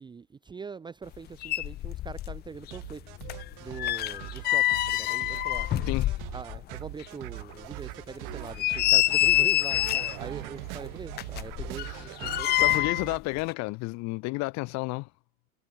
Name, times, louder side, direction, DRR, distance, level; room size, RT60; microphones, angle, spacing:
voice 1, 0.0-3.0 3.6-5.7 6.3-12.7, right 5 dB, 10° right, 1.0 m, -42 dB
sound 1, 1.1-1.2 1.4-2.4 2.7-6.6 7.0-7.1 7.6-7.7 8.3-10.2 11.1-13.1 13.4-13.5, left 15 dB, 20° left, 0.8 m, -26 dB
sound 2, 2.7-13.2, right 40 dB or more, 45° right, 3.4 m, -41 dB
voice 2, 5.9-6.2 11.9-12.0 12.6-15.1, left 26 dB, 40° left, 2.7 m, -31 dB
figure-of-eight pair, 95°, 43 cm